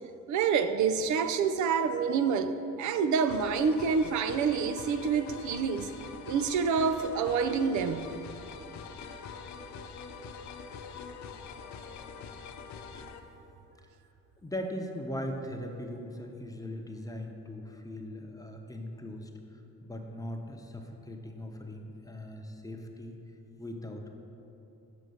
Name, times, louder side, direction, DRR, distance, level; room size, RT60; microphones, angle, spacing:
voice 1, 0.3-2.5 2.8-5.9 6.3-8.1, right 6 dB, 75° right, 10 dB, 0.5 m, -27 dB
sound 1, 3.3-13.2, left 5 dB, 65° left, 0.7 m, -44 dB
voice 2, 14.4-19.3 19.8-23.1 23.6-24.1, left 1 dB, 10° left, 2 dB, 0.8 m, -39 dB
6.8 x 4.8 x 6.4 m, 2.9 s
cardioid pair, 90°, 30 cm